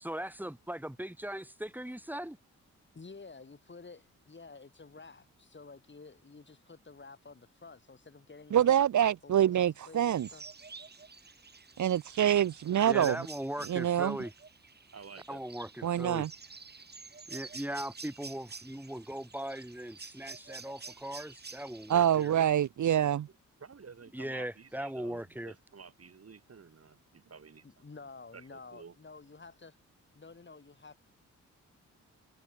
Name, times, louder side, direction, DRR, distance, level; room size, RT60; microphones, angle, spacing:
voice 1, 0.0-2.4 12.9-14.3 15.3-16.3 17.3-22.3 24.1-25.5, right 1 dB, 5° right, 5.1 m, -39 dB
voice 2, 2.9-8.7 9.2-10.4 27.6-29.8 30.1-31.1, left 4 dB, 35° left, 7.6 m, -51 dB
voice 3, 8.5-10.3 11.8-13.2 13.7-14.2 15.8-16.3 21.9-23.2, right 10 dB, 65° right, 1.0 m, -26 dB
sound 1, 10.1-22.7, right 4 dB, 30° right, 2.0 m, -50 dB
voice 4, 14.9-15.4 23.6-27.6 28.3-28.9, right 5 dB, 50° right, 5.2 m, -52 dB
cardioid pair, 70°, 31 cm